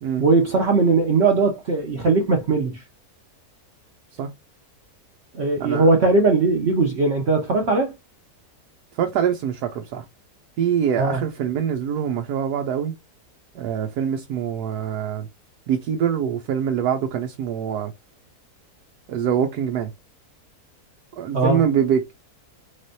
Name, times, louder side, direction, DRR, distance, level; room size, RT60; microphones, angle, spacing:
voice 1, 0.2-2.8 5.3-7.9 11.0-11.2 21.3-21.6, right 3 dB, 50° right, 1.0 m, -19 dB
voice 2, 8.9-10.1 10.6-12.9 13.5-15.3 15.7-17.9 19.1-19.9 21.2-22.1, right 8 dB, 90° right, 1.3 m, -24 dB
4.2 x 3.3 x 2.7 m
omnidirectional pair, 1.6 m